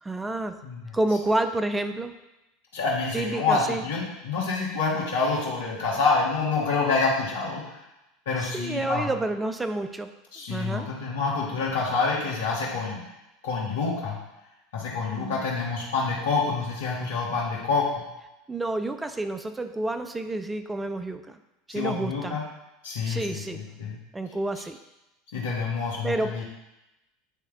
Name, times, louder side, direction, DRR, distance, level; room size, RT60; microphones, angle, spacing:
voice 1, 0.0-0.6 0.9-2.1 3.1-3.8 8.4-10.1 10.5-10.9 15.1-15.5 18.5-21.4 21.7-22.4 23.1-23.6 24.1-24.8 26.0-26.4, right 2 dB, 15° right, 8 dB, 0.4 m, -29 dB
voice 2, 2.7-7.6 8.3-9.1 10.3-13.0 13.4-14.2 14.7-17.8 21.7-22.4 22.8-24.0 25.3-26.4, left 4 dB, 75° left, -4 dB, 1.9 m, -27 dB
10.0 x 3.4 x 3.5 m, 0.95 s
hypercardioid pair, 80°, 0 cm